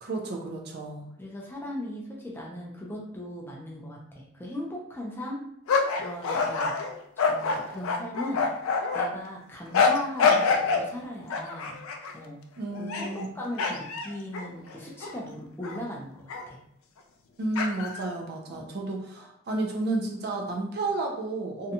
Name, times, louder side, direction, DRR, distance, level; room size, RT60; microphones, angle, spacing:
voice 1, 0.0-1.1 12.6-13.3 17.4-21.7, right 2 dB, 50° right, 2 dB, 0.4 m, -31 dB
voice 2, 1.2-5.4 5.9-6.7 7.3-8.4 8.9-11.8 12.1-12.4 12.8-16.6 18.5-18.7 21.6-21.7, left 1 dB, 10° left, -3 dB, 0.4 m, -38 dB
sound 1, 5.7-9.1 9.7-10.9 11.3-12.1 12.8-13.2 13.6-15.2 15.6-15.8 16.3-16.4 17.6-18.0, left 4 dB, 85° left, 0.4 m, -26 dB
2.6 x 2.2 x 2.7 m, 0.72 s
head